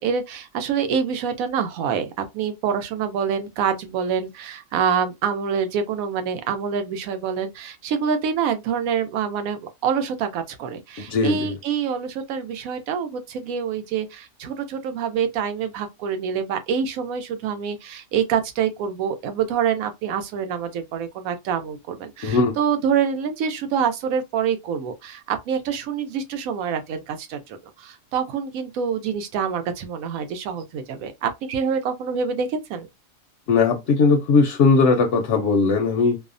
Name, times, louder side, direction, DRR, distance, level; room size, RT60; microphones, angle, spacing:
voice 1, 0.0-32.9, right 7 dB, 80° right, 1.0 m, -26 dB
voice 2, 11.0-11.5 22.2-22.5 33.5-36.2, left 4 dB, 65° left, 0.8 m, -19 dB
2.7 x 2.0 x 2.5 m
omnidirectional pair, 1.5 m